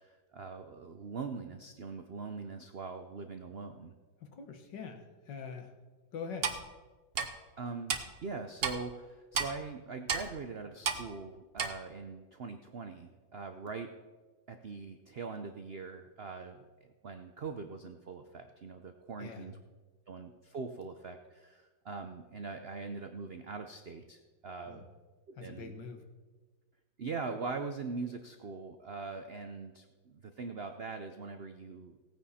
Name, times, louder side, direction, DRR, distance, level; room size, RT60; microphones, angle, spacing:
voice 1, 0.0-3.9 7.6-13.9 14.5-19.6 20.1-24.9 25.3-25.7 27.0-32.0, right 4 dB, 85° right, 7 dB, 0.5 m, -42 dB
voice 2, 4.2-5.7 6.1-6.6 19.2-19.5 24.7-24.8 25.4-26.0, left 5 dB, 65° left, 5 dB, 1.9 m, -44 dB
Clock, 6.4-6.6 7.2-7.3 7.9-8.0 8.6-8.8 9.4-9.5 10.1-10.3 10.9-11.0 11.6-11.7, right 6 dB, 45° right, 0.8 m, -31 dB
17.0 x 9.4 x 4.3 m, 1.3 s
omnidirectional pair, 2.1 m